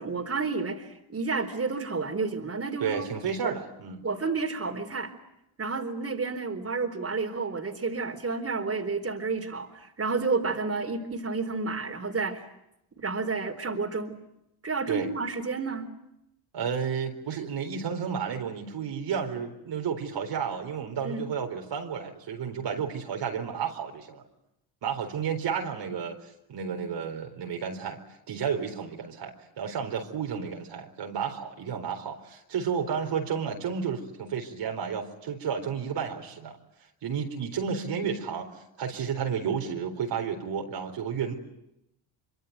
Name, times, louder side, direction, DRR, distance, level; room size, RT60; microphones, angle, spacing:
voice 1, 0.0-3.1 3.4-3.5 4.0-5.1 5.6-12.5 13.0-14.1 14.6-15.9 21.0-21.2, right 4 dB, 30° right, 5 dB, 4.3 m, -30 dB
voice 2, 2.8-4.0 14.9-15.1 16.5-24.2 24.8-28.0 28.3-36.6 37.0-41.3, right 7 dB, 60° right, 3 dB, 4.2 m, -32 dB
24.5 x 24.5 x 9.4 m, 0.84 s
supercardioid pair, 70°, 47 cm